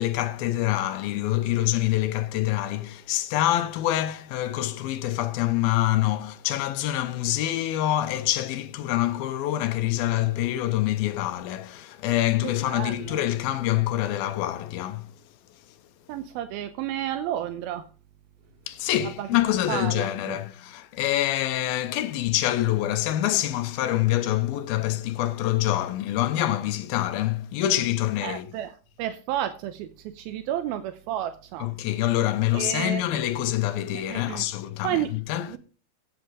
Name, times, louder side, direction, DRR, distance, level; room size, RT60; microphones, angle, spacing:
voice 1, 0.0-15.1 18.7-28.6 31.6-35.6, left 14 dB, 75° left, 2.6 m, -26 dB
voice 2, 12.4-13.2 16.1-17.8 19.2-19.3 19.7-20.4 28.2-28.7 29.0-29.9 30.2-31.7 32.5-33.0 33.9-34.4 34.8-35.1 35.5-35.6, right 11 dB, 80° right, 2.5 m, -31 dB
16.5 x 7.9 x 4.9 m
omnidirectional pair, 4.5 m